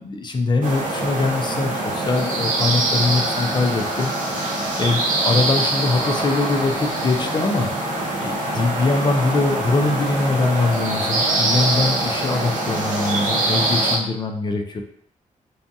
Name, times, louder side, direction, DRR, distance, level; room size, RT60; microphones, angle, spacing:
voice 1, 0.0-4.1 4.8-7.7 8.2-14.8, left 3 dB, 35° left, 4 dB, 0.4 m, -22 dB
sound 1, 0.6-14.0, right 2 dB, 75° right, 0.7 m, -23 dB
2.7 x 2.2 x 2.6 m, 0.68 s
cardioid pair, 95°, 14 cm